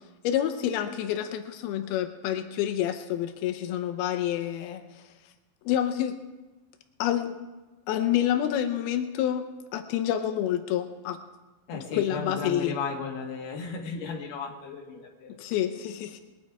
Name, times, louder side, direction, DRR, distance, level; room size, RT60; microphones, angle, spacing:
voice 1, 0.2-5.0 5.7-6.2 7.0-7.3 7.9-9.5 9.7-11.2 11.9-12.8 15.4-16.2, left 11 dB, 85° left, 8 dB, 2.6 m, -28 dB
voice 2, 11.7-15.4, left 4 dB, 50° left, -1 dB, 2.8 m, -35 dB
21.5 x 9.4 x 4.7 m, 1.2 s
omnidirectional pair, 4.4 m